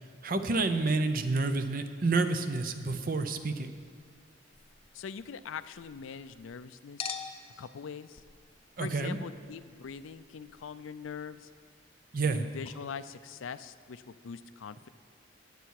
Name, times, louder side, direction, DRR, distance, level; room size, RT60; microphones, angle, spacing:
voice 1, 0.2-3.7 8.8-9.2 12.1-12.5, right 3 dB, 45° right, 9 dB, 0.7 m, -29 dB
Chink clink, 3.6-6.6 7.0-12.4 12.7-12.8, left 6 dB, 30° left, 0.6 m, -48 dB
voice 2, 4.9-7.2 7.6-8.2 8.8-11.5 12.3-14.9, left 6 dB, 85° left, 14 dB, 0.4 m, -42 dB
17.5 x 6.8 x 4.7 m, 2.2 s
head